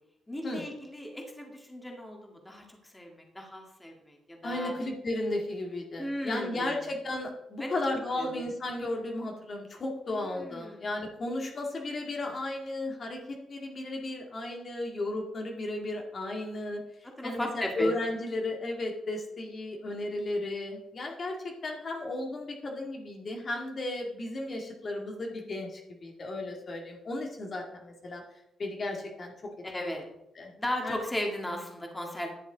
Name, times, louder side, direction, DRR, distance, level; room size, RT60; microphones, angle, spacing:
voice 1, 0.3-4.7 6.0-6.8 7.6-7.8 8.2-8.5 10.1-10.8 17.2-17.9 29.6-30.1 30.6-32.3, left 1 dB, 15° left, 1 dB, 2.0 m, -36 dB
voice 2, 4.4-16.8 17.2-28.2 28.6-29.5 29.8-29.9 30.4-30.5 30.8-31.0, left 2 dB, 45° left, 1 dB, 2.0 m, -34 dB
11.0 x 7.3 x 4.0 m, 0.83 s
cardioid pair, 85°, 0 cm